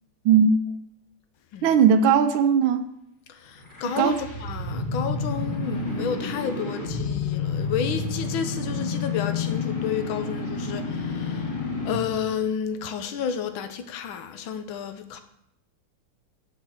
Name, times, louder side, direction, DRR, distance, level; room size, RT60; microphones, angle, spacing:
voice 1, 1.6-2.9 4.0-4.1, right 7 dB, 75° right, 1.4 m, -18 dB
voice 2, 3.3-11.6 11.8-15.2, left 7 dB, 70° left, 1.6 m, -31 dB
sound 1, 3.6-12.2, left 4 dB, 25° left, 1.6 m, -30 dB
7.5 x 6.5 x 6.6 m
omnidirectional pair, 2.4 m